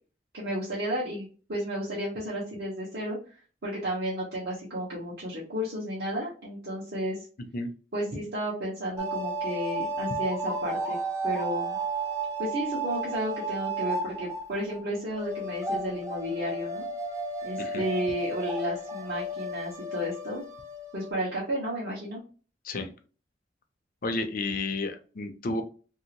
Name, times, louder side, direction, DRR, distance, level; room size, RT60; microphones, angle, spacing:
voice 1, 0.3-3.2 3.6-7.2 7.9-11.0 11.2-11.8 12.4-16.8 17.4-20.4 20.9-22.2, equal, 60° right, -7 dB, 1.0 m, -32 dB
sound 1, 9.0-14.8 15.1-21.1, right 2 dB, 15° right, 0.6 m, -33 dB
voice 2, 24.0-25.6, left 2 dB, 50° left, 7 dB, 0.6 m, -31 dB
2.9 x 2.8 x 2.8 m, 0.37 s
head